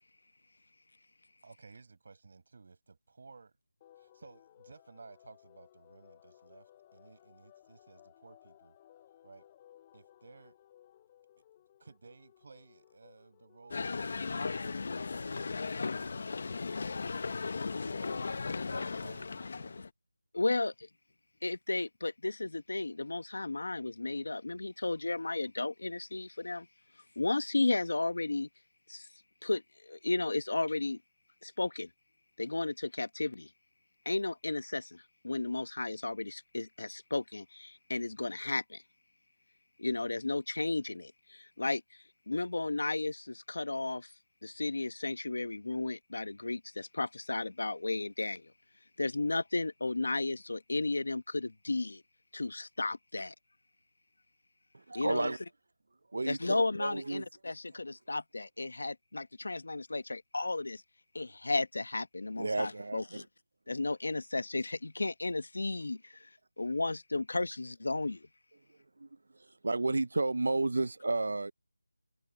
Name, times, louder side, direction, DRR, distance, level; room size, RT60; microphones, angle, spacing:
voice 1, 1.4-3.6 4.0-8.7 9.2-9.5 9.9-10.6 11.8-14.9 17.8-18.2 18.6-19.8, right 4 dB, 30° right, 6.8 m, -56 dB
sound 1, 3.8-18.2, left 12 dB, 10° left, 6.9 m, -62 dB
sound 2, 13.7-19.9, left 4 dB, 30° left, 0.6 m, -36 dB
voice 2, 20.3-20.9 21.4-26.7 27.1-28.5 28.9-29.1 29.4-31.0 31.4-31.9 32.4-33.5 34.0-38.8 39.8-41.8 42.3-44.1 44.4-48.5 49.0-52.0 52.3-53.3 54.9-55.3 56.2-60.8 61.1-63.2 63.7-66.2 66.6-68.3, left 2 dB, 50° left, 1.3 m, -34 dB
voice 3, 54.9-55.4 56.1-57.2 62.4-63.0 69.0-69.1 69.4-71.5, right 2 dB, 45° right, 0.4 m, -32 dB
figure-of-eight pair, 180°, 0 cm